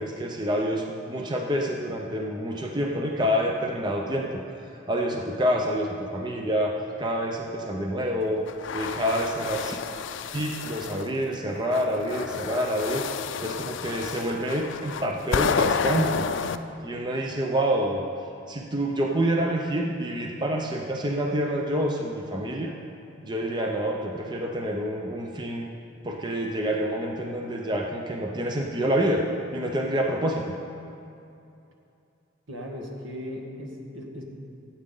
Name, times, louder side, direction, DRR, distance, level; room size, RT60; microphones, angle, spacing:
voice 1, 0.0-8.4 8.7-9.8 10.3-13.1 13.4-16.3 16.8-18.0 18.5-22.7 23.2-25.7 26.0-29.3 29.5-30.5, equal, 20° right, 1 dB, 0.6 m, -27 dB
sound 1, 8.5-11.1 11.7-16.6, left 6 dB, 70° left, 0.4 m, -30 dB
voice 2, 32.5-34.2, left 1 dB, 80° right, 0 dB, 1.6 m, -37 dB
16.0 x 8.6 x 3.8 m, 2.6 s
head